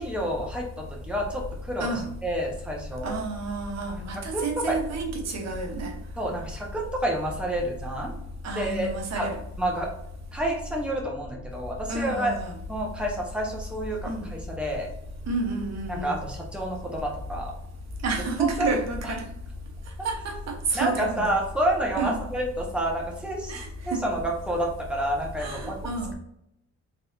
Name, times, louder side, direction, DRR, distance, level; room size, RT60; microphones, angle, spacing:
voice 1, 0.0-1.9 2.2-3.1 4.3-4.8 6.2-8.1 8.5-8.9 9.2-9.3 9.6-9.9 10.3-12.3 12.7-14.9 15.9-17.5 18.4-18.7 19.0-19.1 20.7-23.6 23.8-25.8, right 1 dB, 5° right, -2 dB, 1.0 m, -29 dB
voice 2, 3.0-5.9 8.4-9.4 11.9-12.6 14.1-14.3 15.3-16.2 18.0-19.2 20.0-21.4 22.0-22.2 23.5-24.0 25.4-26.1, right 3 dB, 65° right, 3 dB, 1.1 m, -30 dB
4.0 x 3.6 x 2.7 m, 0.78 s
cardioid pair, 155°, 29 cm